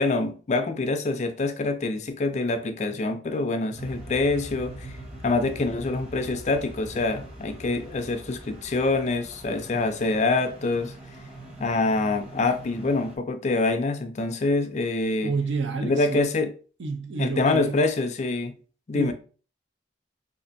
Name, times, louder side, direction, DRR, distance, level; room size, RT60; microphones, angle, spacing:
voice 1, 0.0-4.9 5.2-10.9 11.6-15.3 15.8-16.5 17.2-18.5 18.9-19.1, left 3 dB, 35° left, 0.4 m, -25 dB
sound 1, 3.7-13.2, right 1 dB, 30° right, 1.0 m, -42 dB
voice 2, 15.2-16.3 16.8-17.9 18.9-19.1, right 4 dB, 70° right, 0.6 m, -29 dB
4.9 x 2.4 x 2.6 m
head